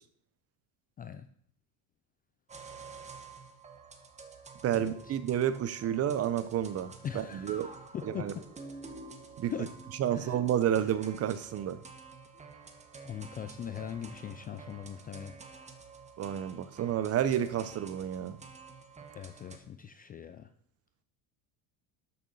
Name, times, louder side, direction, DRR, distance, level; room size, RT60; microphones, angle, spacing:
sound 1, 2.5-19.6, right 4 dB, 15° right, 1.2 m, -49 dB
voice 1, 4.6-7.7 8.0-8.3 9.4-9.5 10.0-11.8 16.2-18.4, right 10 dB, 35° right, 13 dB, 0.8 m, -30 dB
voice 2, 7.0-7.5 7.9-8.3 9.5-9.7 10.1-10.4 13.0-15.3 19.1-20.5, left 8 dB, 20° left, 10 dB, 0.4 m, -40 dB
12.5 x 6.6 x 5.5 m, 0.64 s
cardioid pair, 135°, 44 cm